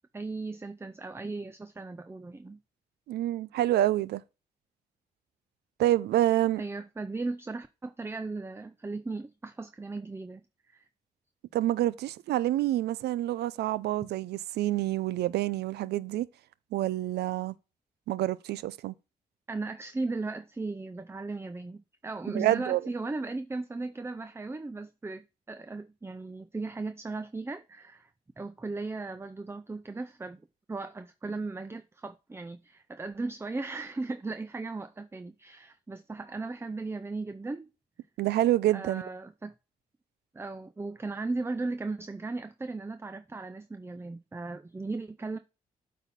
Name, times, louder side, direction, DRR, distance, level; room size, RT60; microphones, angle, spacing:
voice 1, 0.1-2.6 6.6-10.9 19.5-28.1 28.4-30.4 30.7-37.7 38.7-39.5 40.3-45.4, right 3 dB, 15° right, 0.5 m, -37 dB
voice 2, 3.1-4.2 5.8-6.6 11.5-16.3 16.7-17.5 18.1-18.9 22.3-22.8 38.2-39.0, right 14 dB, 85° right, 0.4 m, -27 dB
8.1 x 4.2 x 4.1 m
supercardioid pair, 55°, 17 cm